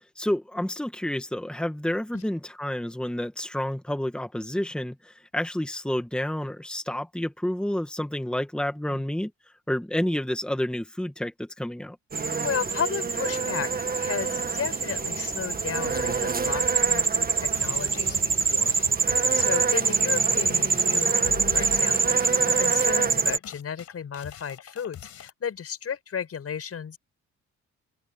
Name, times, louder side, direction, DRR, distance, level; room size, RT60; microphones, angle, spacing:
voice 1, 0.2-9.3 9.7-12.0, left 1 dB, 5° left, 2.2 m, -29 dB
sound 1, 12.1-23.4, right 5 dB, 30° right, 1.7 m, -24 dB
voice 2, 12.4-18.7 19.0-27.0, left 7 dB, 50° left, 6.6 m, -34 dB
sound 2, 17.5-25.3, left 10 dB, 70° left, 5.5 m, -43 dB
open air
cardioid pair, 90°, 30 cm